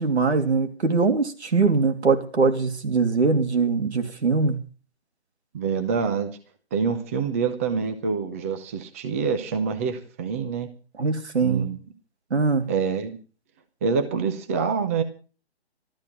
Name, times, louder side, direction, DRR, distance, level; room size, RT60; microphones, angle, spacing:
voice 1, 0.0-4.6 11.0-11.7 12.3-12.7, right 4 dB, 85° right, 7 dB, 3.0 m, -22 dB
voice 2, 5.5-6.3 6.7-10.7 11.4-11.8 12.7-13.2 13.8-15.0, right 5 dB, 15° right, 8 dB, 0.7 m, -26 dB
13.5 x 13.5 x 5.9 m, 0.37 s
hypercardioid pair, 165°, 33 cm